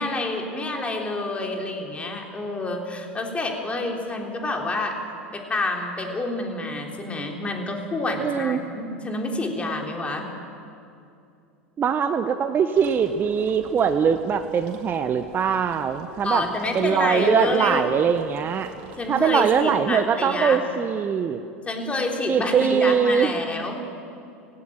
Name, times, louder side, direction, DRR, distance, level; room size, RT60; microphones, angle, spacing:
voice 1, 0.0-5.0 5.3-10.3 16.2-17.9 19.0-20.6 21.7-23.9, left 2 dB, 15° left, 1 dB, 3.6 m, -28 dB
voice 2, 8.2-8.6 11.8-16.4 16.7-18.7 19.1-21.4 22.3-23.3, right 7 dB, 30° right, 8 dB, 1.0 m, -22 dB
sound 1, 12.7-19.8, right 4 dB, 50° right, 3.4 m, -47 dB
19.0 x 17.0 x 9.3 m, 2.5 s
figure-of-eight pair, 85°, 7 cm